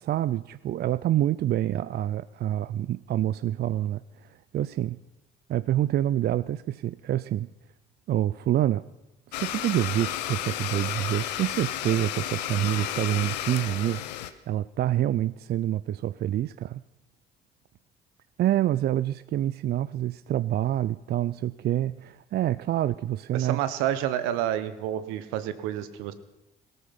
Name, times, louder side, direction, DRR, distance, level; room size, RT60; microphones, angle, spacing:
voice 1, 0.0-4.0 4.5-5.0 5.5-7.5 8.1-8.8 9.3-14.0 14.5-16.8 18.4-23.6, right 12 dB, 50° right, 17 dB, 0.5 m, -27 dB
Domestic sounds home sounds, 9.3-14.3, left 12 dB, 90° left, 0.8 m, -32 dB
voice 2, 23.3-26.1, right 11 dB, 80° right, 13 dB, 1.1 m, -29 dB
17.5 x 13.5 x 5.9 m, 0.94 s
hypercardioid pair, 55°, 21 cm